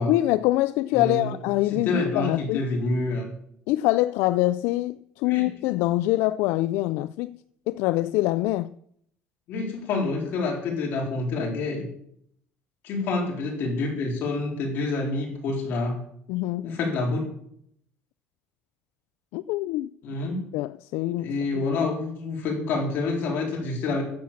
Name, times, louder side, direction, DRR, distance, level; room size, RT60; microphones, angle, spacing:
voice 1, 0.0-2.6 3.7-7.4 7.7-8.7 16.3-16.7 19.3-19.9 20.2-21.8, left 17 dB, 85° left, 0.3 m, -25 dB
voice 2, 0.9-1.3 1.7-3.3 5.3-5.4 9.5-11.9 12.8-16.0 16.6-17.3 20.0-20.4 21.2-24.0, left 3 dB, 60° left, 4.1 m, -27 dB
10.5 x 7.5 x 7.2 m
cardioid pair, 145°, 4 cm